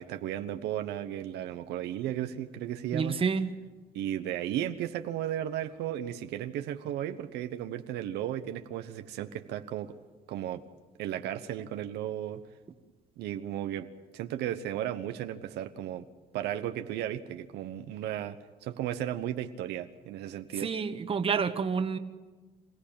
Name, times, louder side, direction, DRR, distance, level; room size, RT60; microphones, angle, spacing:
voice 1, 0.0-3.2 3.9-10.0 10.3-10.6 11.0-12.4 13.2-13.9 14.1-16.0 16.3-20.7, right 11 dB, 80° right, 8 dB, 1.1 m, -35 dB
voice 2, 2.9-3.5 20.6-22.0, right 5 dB, 35° right, 9 dB, 1.5 m, -29 dB
27.0 x 16.0 x 8.9 m, 1.3 s
cardioid pair, 110°, 17 cm